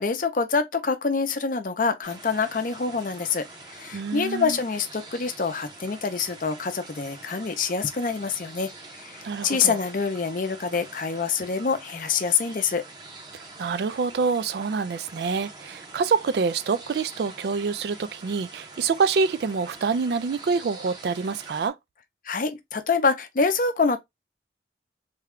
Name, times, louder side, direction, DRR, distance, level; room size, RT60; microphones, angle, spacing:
voice 1, 0.0-12.8 22.2-24.0, left 5 dB, 45° left, 0.5 m, -26 dB
sound 1, 2.0-21.7, right 3 dB, 25° right, 0.7 m, -45 dB
voice 2, 3.9-4.6 9.2-9.8 13.3-21.7, right 5 dB, 60° right, 0.3 m, -26 dB
3.4 x 2.2 x 3.5 m
head